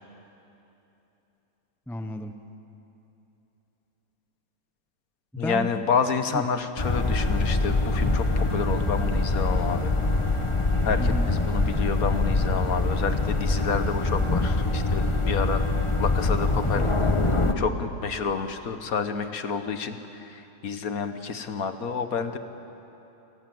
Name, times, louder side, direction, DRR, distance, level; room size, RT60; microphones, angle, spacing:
voice 1, 1.9-2.4 5.3-5.7 6.3-6.4 11.0-11.3 16.7-17.4, left 1 dB, 5° left, 7 dB, 0.3 m, -34 dB
voice 2, 5.4-9.9 10.8-16.8 17.6-22.4, left 5 dB, 55° left, 9 dB, 1.5 m, -29 dB
sound 1, 6.8-17.5, left 2 dB, 20° left, 1.0 m, -24 dB
28.5 x 19.5 x 7.8 m, 3.0 s
omnidirectional pair, 2.0 m